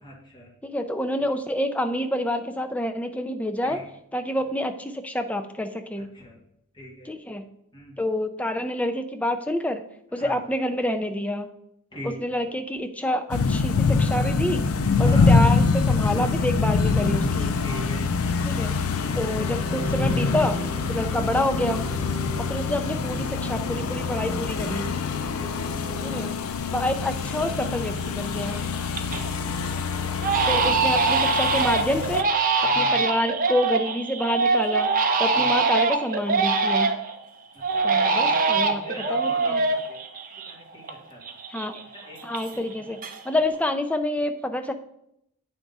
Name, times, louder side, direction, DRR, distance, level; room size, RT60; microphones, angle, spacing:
voice 1, 0.0-0.5 1.2-1.3 3.6-3.8 4.5-4.6 6.1-6.4 6.7-7.1 7.7-8.0 10.1-10.5 11.9-12.2 14.9-15.4 17.6-18.0 21.0-21.2 22.2-22.4 25.3-25.7 29.1-29.3 32.6-33.0 35.3-35.6 37.5-39.5 39.9-40.0 40.5-41.4 41.9-42.2 42.5-43.0 43.3-43.4, equal, 20° left, -3 dB, 1.7 m, -41 dB
voice 2, 0.6-3.8 4.1-6.1 7.0-7.4 8.0-9.8 10.1-11.5 12.0-14.6 15.0-17.5 18.4-18.7 19.2-20.6 20.9-21.8 22.4-25.0 26.0-26.3 26.7-28.6 30.5-32.5 32.7-34.9 35.2-36.9 37.8-38.8 39.1-39.6 41.5-41.8 42.2-43.0 43.2-44.7, left 1 dB, 5° left, 6 dB, 0.4 m, -27 dB
sound 1, 13.3-32.2, left 4 dB, 80° left, 0.5 m, -25 dB
sound 2, 18.9-26.3, right 1 dB, 55° left, 2.1 m, -38 dB
Crying sobbing, 27.0-27.1 27.6-28.1 28.5-29.3 29.6-29.8 30.2-37.1 37.6-40.9 41.2-42.7 43.0-43.5, right 4 dB, 40° right, 0.6 m, -23 dB
8.8 x 3.6 x 4.0 m, 0.76 s
head